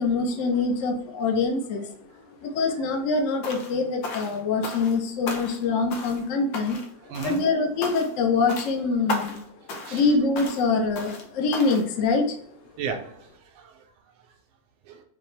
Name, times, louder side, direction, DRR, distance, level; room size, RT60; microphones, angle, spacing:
voice 1, 0.0-1.9 2.4-6.8 7.2-9.4 9.9-12.4, left 4 dB, 90° left, 2 dB, 0.6 m, -24 dB
sound 1, 3.4-3.8 4.0-5.0 5.3-5.6 5.9-6.3 6.5-6.9 7.1-7.5 7.8-8.2 8.5-8.7 9.1-9.4 9.7-10.0 10.4-10.6 11.0-11.2 11.5-11.9, left 3 dB, 70° left, 1.4 m, -34 dB
voice 2, 7.1-7.4 9.8-10.2 12.8-13.8 14.9-15.0, right 6 dB, 90° right, 4 dB, 1.5 m, -35 dB
5.7 x 2.1 x 3.2 m, 0.63 s
omnidirectional pair, 2.3 m